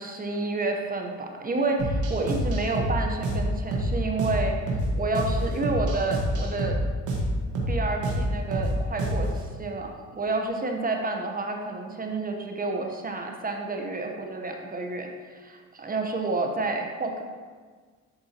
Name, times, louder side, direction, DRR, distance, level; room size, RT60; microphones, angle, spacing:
voice 1, 0.0-6.8 7.7-17.2, right 3 dB, 30° right, 3 dB, 0.9 m, -30 dB
sound 1, 1.8-9.4, equal, 85° right, 1.4 m, -27 dB
10.5 x 4.2 x 2.9 m, 1.5 s
cardioid pair, 90°, 30 cm